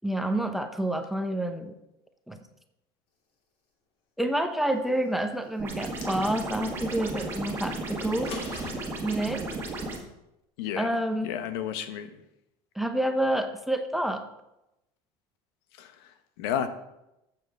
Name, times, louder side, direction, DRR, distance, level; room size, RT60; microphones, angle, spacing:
voice 1, 0.0-1.7 2.3-2.4 4.2-8.3 9.0-9.5 10.8-11.3 12.8-14.3, right 1 dB, ahead, 7 dB, 0.7 m, -28 dB
sound 1, 5.6-10.0, right 2 dB, 20° right, 1.8 m, -34 dB
sound 2, 5.7-6.6 8.0-8.7, left 4 dB, 50° left, 2.8 m, -41 dB
voice 2, 10.6-10.9 11.2-12.2 15.8-16.7, left 9 dB, 80° left, 10 dB, 1.2 m, -32 dB
14.0 x 7.5 x 4.7 m, 0.89 s
cardioid pair, 165°, 13 cm